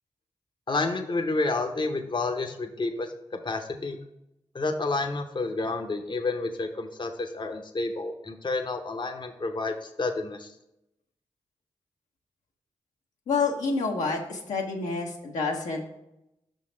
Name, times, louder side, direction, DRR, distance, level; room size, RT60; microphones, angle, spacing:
voice 1, 0.7-3.1 3.4-4.0 4.5-10.5, left 3 dB, 40° left, 5 dB, 0.7 m, -30 dB
voice 2, 13.3-15.8, left 4 dB, 85° left, 0 dB, 1.0 m, -28 dB
5.7 x 3.9 x 5.1 m, 0.84 s
supercardioid pair, 40°, 12 cm